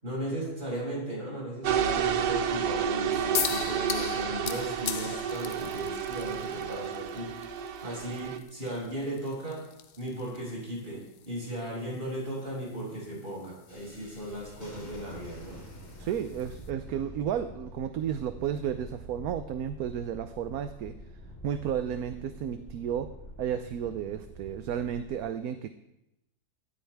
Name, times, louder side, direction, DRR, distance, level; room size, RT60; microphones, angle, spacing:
voice 1, 0.0-7.4 7.8-9.6 10.0-15.6, right 1 dB, 35° right, -5 dB, 7.3 m, -36 dB
sound 1, 1.6-8.4, right 8 dB, 90° right, 1.4 m, -31 dB
sound 2, 3.3-16.7, left 8 dB, 85° left, 0.5 m, -41 dB
Thunderstorm, 13.7-25.2, equal, 10° left, 4.1 m, -47 dB
voice 2, 16.0-21.0 21.4-23.1 23.4-25.7, right 9 dB, 70° right, 9 dB, 1.1 m, -32 dB
17.0 x 15.0 x 3.5 m, 0.89 s
omnidirectional pair, 1.7 m